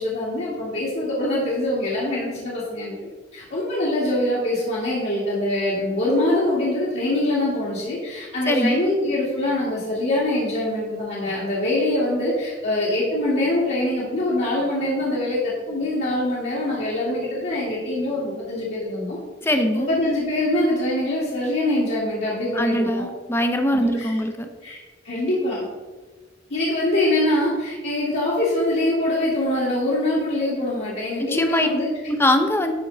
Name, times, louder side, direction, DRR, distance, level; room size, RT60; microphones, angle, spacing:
voice 1, 0.0-19.2 19.5-23.0 23.7-24.2 24.6-24.8 25.0-25.6 26.5-31.9, left 1 dB, 65° left, -8 dB, 2.0 m, -24 dB
voice 2, 8.5-8.8 19.4-19.9 22.6-24.5 31.2-31.7 32.1-32.7, left 1 dB, 15° left, 6 dB, 0.6 m, -22 dB
11.5 x 4.4 x 3.9 m, 1.3 s
head